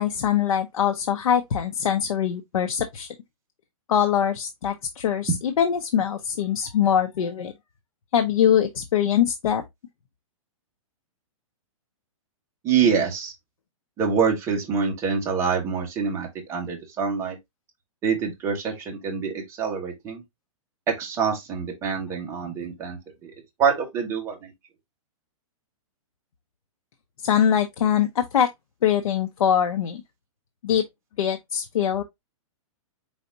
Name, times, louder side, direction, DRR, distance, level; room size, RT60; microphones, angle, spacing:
voice 1, 0.0-3.1 3.9-7.5 8.1-9.6 27.2-28.5 28.8-30.0 30.6-30.8 31.2-32.0, left 9 dB, 80° left, 0.8 m, -23 dB
voice 2, 12.6-13.3 14.0-17.4 18.0-20.2 20.9-23.3 23.6-24.5, right 6 dB, 15° right, 1.3 m, -25 dB
4.9 x 4.0 x 2.6 m
hypercardioid pair, 165°, 18 cm